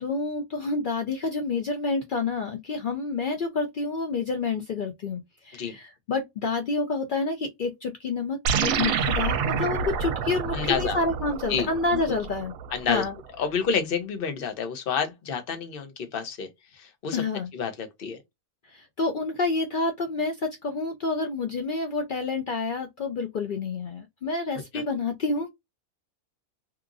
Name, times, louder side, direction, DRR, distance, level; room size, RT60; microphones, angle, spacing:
voice 1, 0.0-12.5 12.9-13.1 17.1-17.5 18.6-25.5, left 3 dB, 85° left, 0.4 m, -28 dB
sound 1, 8.4-13.1, right 6 dB, 75° right, 1.0 m, -28 dB
voice 2, 10.5-11.0 11.5-11.7 12.7-13.0 13.4-16.5 16.7-17.2 17.5-18.2 24.7-24.8, left 6 dB, 50° left, 0.8 m, -29 dB
2.8 x 2.4 x 2.4 m
omnidirectional pair, 1.5 m